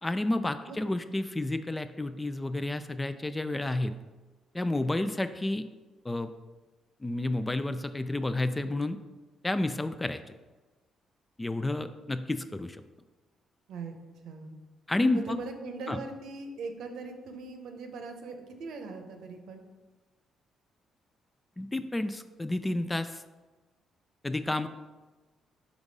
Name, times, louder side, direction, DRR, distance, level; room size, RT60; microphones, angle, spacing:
voice 1, 0.0-4.0 4.5-5.6 6.0-6.3 7.0-9.0 9.4-10.2 11.4-12.8 14.9-15.4 15.9-16.0 21.6-23.2 24.2-24.7, left 2 dB, 15° left, 10 dB, 0.3 m, -30 dB
voice 2, 14.2-14.6 15.1-19.6, right 4 dB, 80° right, 5 dB, 0.8 m, -40 dB
5.2 x 3.5 x 5.3 m, 1.2 s
cardioid pair, 90°, 0 cm